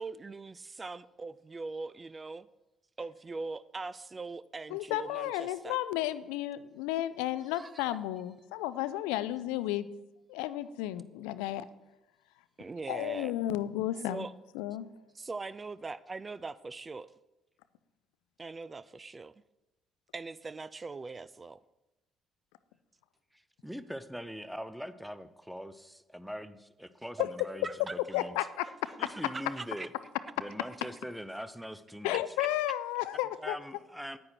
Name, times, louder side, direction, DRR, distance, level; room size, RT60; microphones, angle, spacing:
voice 1, 0.0-2.5 3.0-5.8 7.5-7.9 12.6-13.3 14.1-14.3 15.1-17.1 18.4-19.3 20.1-21.6 27.6-28.0 28.9-29.9 32.4-32.5, right 3 dB, 25° right, 16 dB, 0.4 m, -41 dB
voice 2, 4.7-9.9 10.3-11.7 12.9-14.3 14.5-14.9 27.2-27.3 28.1-28.7 32.0-33.6, left 14 dB, 65° left, 15 dB, 0.4 m, -33 dB
voice 3, 23.3-28.4 29.0-29.9 30.4-32.2 33.4-34.2, equal, ahead, 13 dB, 0.7 m, -42 dB
9.7 x 9.5 x 4.6 m, 0.94 s
figure-of-eight pair, 50°, 0 cm